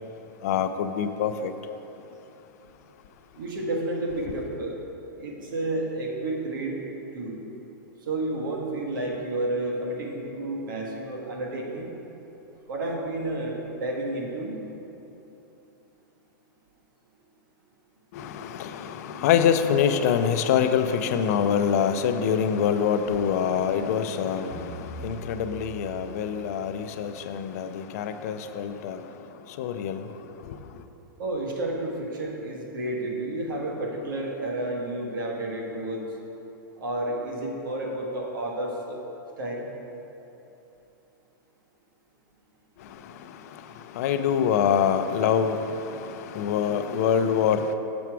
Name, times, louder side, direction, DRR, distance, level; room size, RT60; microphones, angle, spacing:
voice 1, 0.4-1.5 18.1-29.0 29.6-30.1 43.9-47.7, left 8 dB, 50° left, 9 dB, 0.4 m, -25 dB
voice 2, 3.4-4.8 5.2-6.8 7.1-7.4 8.0-11.9 12.7-14.6 31.2-36.0 36.8-39.0 39.4-39.6, right 1 dB, 80° right, -1 dB, 1.4 m, -31 dB
sound 1, 24.5-27.2, right 3 dB, 5° right, 1.4 m, -42 dB
7.0 x 5.9 x 4.6 m, 3.0 s
supercardioid pair, 165°, 11 cm